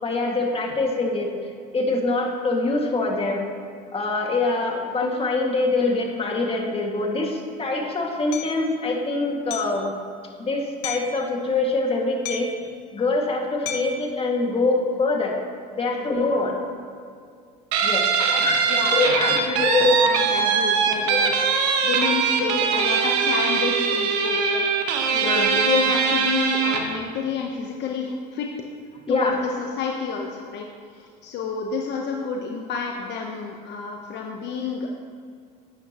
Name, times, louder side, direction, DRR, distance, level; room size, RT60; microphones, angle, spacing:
voice 1, 0.0-3.4 3.9-9.9 10.4-12.5 12.9-15.3 15.8-16.5 17.8-18.6 18.9-19.9 21.1-21.3 25.1-25.5 26.1-26.2 29.1-29.3, left 3 dB, 25° left, 0 dB, 2.0 m, -24 dB
Hammer, 8.3-8.5 9.5-9.8 10.8-11.2 12.3-12.7 13.7-14.0, left 6 dB, 80° left, 0.9 m, -33 dB
Guitar, 17.7-27.0, right 5 dB, 80° right, 1.2 m, -21 dB
voice 2, 18.7-21.3 21.6-28.5 29.1-34.9, left 5 dB, 55° left, 1 dB, 1.0 m, -30 dB
12.0 x 9.2 x 3.0 m, 2.2 s
supercardioid pair, 85°, 21 cm